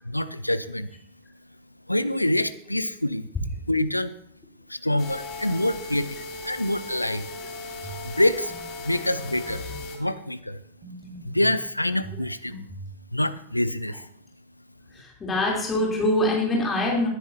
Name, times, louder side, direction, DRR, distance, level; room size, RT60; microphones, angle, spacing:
voice 1, 0.0-0.9 1.9-3.3 3.7-4.1 4.7-6.2 6.4-7.3 8.0-9.7 9.9-10.6 11.2-12.7 13.1-14.1, left 1 dB, 85° left, 14 dB, 0.5 m, -26 dB
sound 1, 5.0-10.0, left 3 dB, 40° left, 3.1 m, -37 dB
sound 2, 7.8-8.1 8.5-8.7 9.2-9.9 10.8-11.6 12.0-13.0, right 2 dB, 30° right, 4.1 m, -40 dB
voice 2, 14.9-17.1, left 1 dB, 20° left, -3 dB, 3.3 m, -24 dB
19.0 x 10.0 x 2.8 m, 0.66 s
figure-of-eight pair, 90°, 0 cm